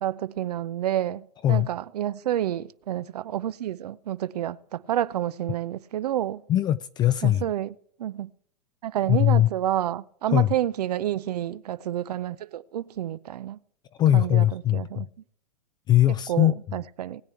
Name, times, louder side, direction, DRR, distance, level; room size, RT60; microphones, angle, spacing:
voice 1, 0.0-6.4 7.2-7.7 8.0-8.3 8.8-13.6 14.1-15.1 16.3-17.2, right 12 dB, 80° right, 0.6 m, -29 dB
voice 2, 6.5-7.4 9.1-9.5 10.3-10.5 14.0-15.1 15.9-16.5, left 13 dB, 20° left, 0.4 m, -20 dB
20.0 x 8.3 x 4.5 m
hypercardioid pair, 130°, 20 cm